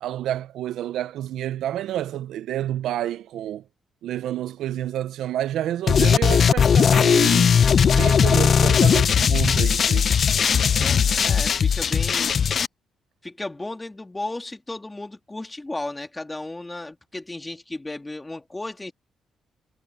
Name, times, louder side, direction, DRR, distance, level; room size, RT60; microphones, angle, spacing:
voice 1, 0.0-3.6 4.0-7.6 7.9-10.1, right 12 dB, 85° right, 0.4 m, -29 dB
sound 1, 5.9-12.7, left 7 dB, 45° left, 0.4 m, -18 dB
voice 2, 10.8-12.3 13.2-18.9, left 2 dB, 15° left, 2.9 m, -34 dB
cardioid pair, 125°, 0 cm